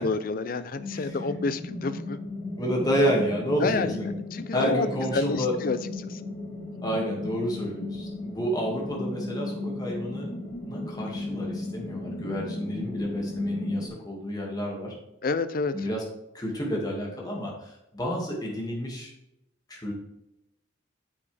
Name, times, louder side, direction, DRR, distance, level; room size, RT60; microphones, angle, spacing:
voice 1, 0.0-2.2 3.6-4.9 5.1-5.8 6.1-6.2 15.2-15.7, left 3 dB, 45° left, 13 dB, 0.5 m, -28 dB
sound 1, 0.8-13.9, left 2 dB, 65° left, 3.2 m, -35 dB
voice 2, 2.6-4.1 4.5-5.5 6.8-10.3 10.6-14.9 15.7-16.0 16.3-19.1 19.7-19.9, equal, 20° left, -2 dB, 2.1 m, -30 dB
8.5 x 7.0 x 3.4 m, 0.89 s
head